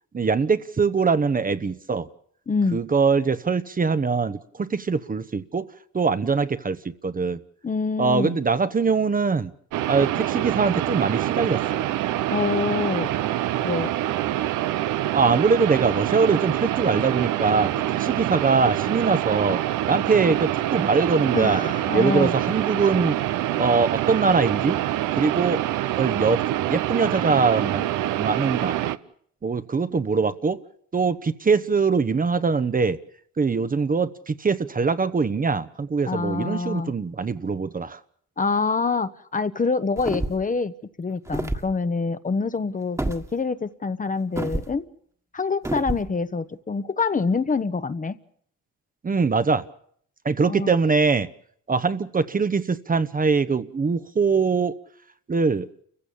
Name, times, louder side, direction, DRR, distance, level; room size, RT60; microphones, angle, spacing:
voice 1, 0.1-2.1 2.7-5.7 5.9-6.8 7.0-7.4 8.0-9.5 9.9-11.8 15.1-17.7 18.0-19.6 19.9-21.6 21.9-23.2 23.5-24.8 25.1-25.7 26.0-26.4 26.7-28.8 29.4-30.6 30.9-33.0 33.4-38.0 49.0-49.7 50.2-51.3 51.7-54.7 55.3-55.7, right 4 dB, 30° right, 12 dB, 1.0 m, -22 dB
voice 2, 2.5-2.8 7.6-8.4 12.3-13.1 13.6-13.9 21.3-22.3 36.1-36.9 38.4-44.9 45.3-48.2 50.5-50.7, left 4 dB, 25° left, 12 dB, 1.0 m, -26 dB
sound 1, 9.7-29.0, right 13 dB, 85° right, 0.8 m, -25 dB
sound 2, 40.0-40.5 41.3-41.7 43.0-43.2 44.4-44.7 45.6-46.1, right 2 dB, 10° right, 1.6 m, -28 dB
29.0 x 15.5 x 7.1 m, 0.64 s
cardioid pair, 90°, 30 cm